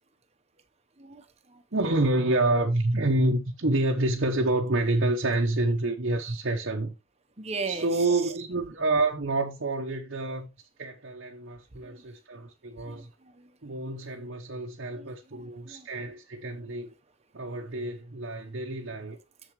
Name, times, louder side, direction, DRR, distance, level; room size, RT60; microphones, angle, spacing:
voice 1, 1.0-1.6 7.4-8.2 11.7-12.0 12.8-13.5 14.9-15.9, right 4 dB, 30° right, 1.1 m, -39 dB
voice 2, 1.7-6.9 7.7-10.5 10.8-13.1 13.6-16.9 17.3-19.2, right 2 dB, 55° right, 1.0 m, -28 dB
7.2 x 7.1 x 3.2 m
head